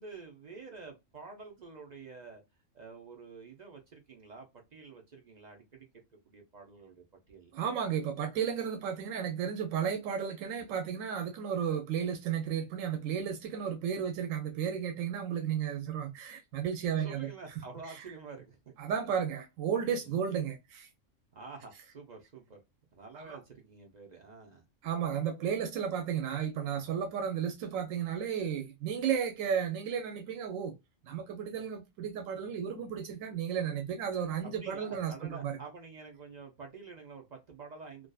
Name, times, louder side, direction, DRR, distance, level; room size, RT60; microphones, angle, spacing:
voice 1, 0.0-2.4 2.7-5.9 6.3-7.5 17.0-18.8 20.0-20.2 21.3-22.6 22.9-24.6 34.4-38.1, right 4 dB, 50° right, 0.5 m, -48 dB
voice 2, 7.5-17.3 17.8-18.0 18.8-20.9 23.1-23.4 24.8-30.7 31.0-35.6, right 8 dB, 90° right, 1.0 m, -33 dB
2.5 x 2.4 x 2.2 m
omnidirectional pair, 1.3 m